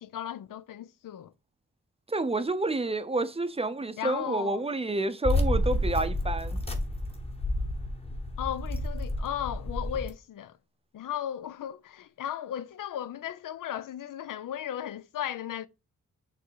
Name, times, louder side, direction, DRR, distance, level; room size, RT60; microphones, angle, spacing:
voice 1, 0.0-1.3 4.0-4.6 8.4-10.5 10.9-15.7, left 10 dB, 90° left, 0.5 m, -36 dB
voice 2, 2.1-6.6, right 2 dB, 20° right, 0.5 m, -29 dB
keys - car unlocking door, 5.2-10.1, left 1 dB, 20° left, 0.9 m, -30 dB
6.8 x 3.2 x 4.6 m
wide cardioid pair, 165°, 31 cm